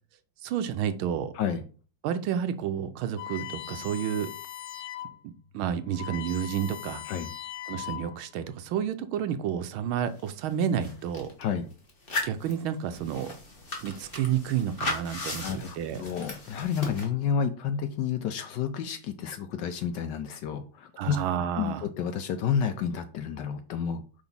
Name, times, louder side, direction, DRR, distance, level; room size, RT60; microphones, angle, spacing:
voice 1, 0.4-1.3 2.0-4.3 5.2-7.0 7.7-11.3 12.2-13.3 13.8-16.0 21.0-21.8, right 9 dB, 80° right, 10 dB, 1.4 m, -30 dB
sound 1, 3.2-5.2 5.6-5.7 5.9-8.3, left 12 dB, 90° left, 0.8 m, -39 dB
sound 2, 10.2-10.3 10.5-11.4 11.9-17.0, left 2 dB, 30° left, 1.3 m, -36 dB
voice 2, 15.4-21.2 21.5-24.0, left 7 dB, 70° left, 9 dB, 1.1 m, -30 dB
4.9 x 4.0 x 5.3 m, 0.37 s
omnidirectional pair, 2.3 m